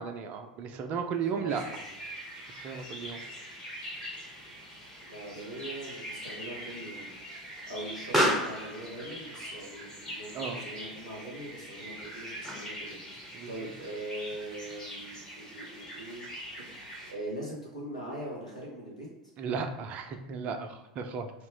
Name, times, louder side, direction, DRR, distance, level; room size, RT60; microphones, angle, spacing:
voice 1, 0.0-1.6 2.6-3.2 10.3-10.6 13.3-13.5 19.4-21.3, right 6 dB, 35° right, 6 dB, 0.4 m, -34 dB
voice 2, 1.3-2.0 5.1-7.1 7.7-16.3 16.6-16.7 17.1-19.1, right 1 dB, 85° left, -5 dB, 1.1 m, -41 dB
sound 1, 1.5-17.1, equal, 20° left, 1.1 m, -43 dB
Explosion, 3.9-12.9, equal, ahead, 0.8 m, -36 dB
2.9 x 2.5 x 3.7 m, 1.0 s
figure-of-eight pair, 85°, 4 cm